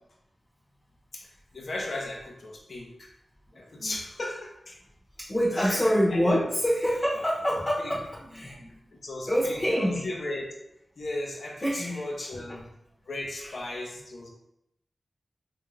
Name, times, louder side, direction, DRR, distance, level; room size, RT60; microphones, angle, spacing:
voice 1, 1.5-3.1 3.5-4.8 5.5-5.8 6.1-6.4 7.8-7.9 8.9-10.5 11.0-12.7 13.1-14.3, left 2 dB, 65° left, 0 dB, 0.7 m, -36 dB
voice 2, 3.5-3.9 5.2-8.7 9.3-10.1 11.6-12.0 13.4-13.5, equal, 30° left, -6 dB, 0.9 m, -26 dB
3.4 x 2.6 x 3.1 m, 0.81 s
wide cardioid pair, 70°, 0 cm